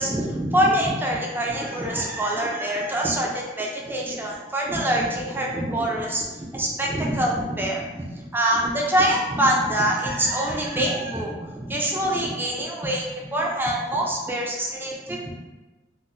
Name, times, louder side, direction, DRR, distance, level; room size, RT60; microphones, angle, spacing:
voice 1, 0.0-15.3, right 1 dB, 10° right, -2 dB, 0.4 m, -25 dB
2.6 x 2.1 x 3.9 m, 1.2 s
head